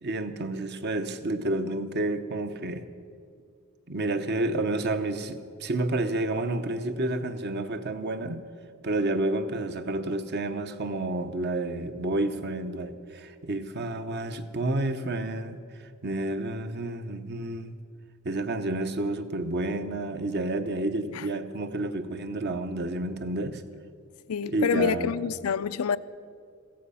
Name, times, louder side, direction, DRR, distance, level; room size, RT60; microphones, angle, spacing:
voice 1, 0.0-2.8 3.9-8.4 8.8-17.8 18.2-23.6 24.4-25.1, right 2 dB, 50° right, 0.9 m, -30 dB
voice 2, 24.3-26.0, left 7 dB, 85° left, 0.5 m, -27 dB
15.5 x 15.5 x 5.6 m
head